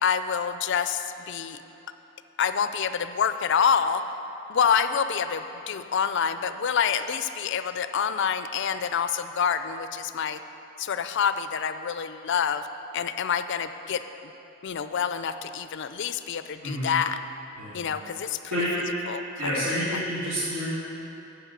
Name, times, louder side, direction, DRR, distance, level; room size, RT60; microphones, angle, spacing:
voice 1, 0.0-1.6 2.4-4.0 4.5-10.4 10.8-12.7 12.9-14.0 14.6-17.2 17.7-18.4 19.1-19.6 19.9-20.0, left 7 dB, 55° left, 11 dB, 0.4 m, -27 dB
voice 2, 16.6-16.9 17.6-17.8 18.5-18.7 19.4-20.7, equal, 75° right, -14 dB, 2.6 m, -28 dB
11.0 x 4.8 x 8.1 m, 3.0 s
head